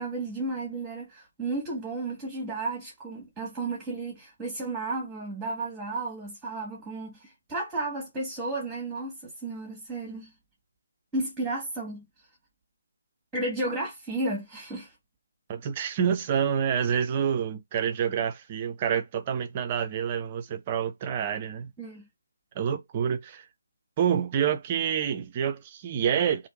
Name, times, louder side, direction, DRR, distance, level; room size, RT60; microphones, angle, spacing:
voice 1, 0.0-10.3 11.1-12.0 13.3-14.9 21.8-22.0, right 2 dB, 5° right, 1.4 m, -33 dB
voice 2, 15.5-21.7 22.5-23.4 24.0-26.5, right 8 dB, 25° right, 0.5 m, -27 dB
3.4 x 2.6 x 4.0 m
figure-of-eight pair, 145°, 0 cm